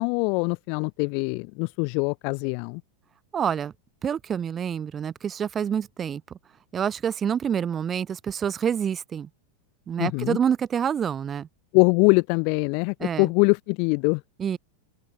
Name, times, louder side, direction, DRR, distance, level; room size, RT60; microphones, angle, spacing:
voice 1, 0.0-2.8 10.0-10.4 11.7-14.2, left 39 dB, 45° left, 1.3 m, -23 dB
voice 2, 3.3-3.7 4.0-6.4 6.7-9.3 9.9-11.5 13.0-13.3 14.4-14.6, right 8 dB, 25° right, 0.4 m, -27 dB
open air
figure-of-eight pair, 90°, 0 cm